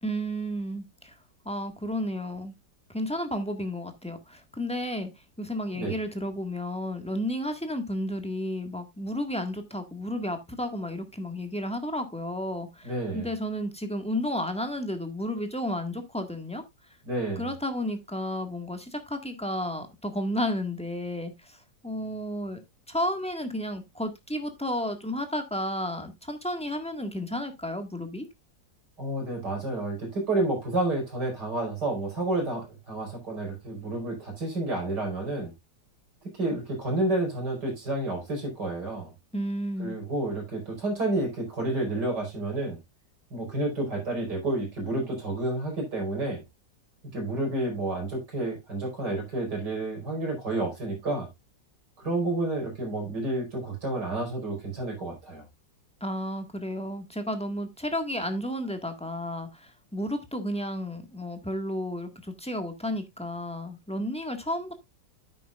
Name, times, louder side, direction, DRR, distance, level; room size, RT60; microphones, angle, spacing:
voice 1, 0.0-1.1 1.4-2.5 2.9-5.1 5.4-16.6 17.4-22.6 22.9-28.3 39.3-40.0 56.0-64.7, equal, 5° left, 1.5 m, -32 dB
voice 2, 12.8-13.3 17.1-17.5 29.0-35.5 36.3-39.1 39.8-42.8 43.3-46.4 47.1-51.3 52.0-55.4, right 2 dB, 65° right, 5.7 m, -30 dB
10.0 x 9.0 x 2.4 m
omnidirectional pair, 1.9 m